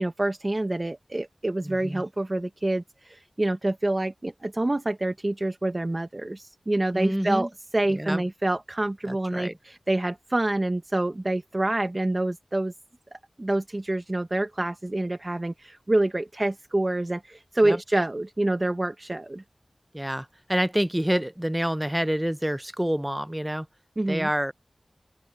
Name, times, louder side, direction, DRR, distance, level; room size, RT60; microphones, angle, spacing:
voice 1, 0.0-12.7 13.1-19.4 24.0-24.3, right 1 dB, 35° right, 1.2 m, -27 dB
voice 2, 1.6-2.0 6.9-7.5 7.9-8.2 9.1-9.6 17.6-17.8 19.9-23.7 24.1-24.5, equal, 10° right, 0.6 m, -27 dB
open air
wide cardioid pair, 60°, 0 cm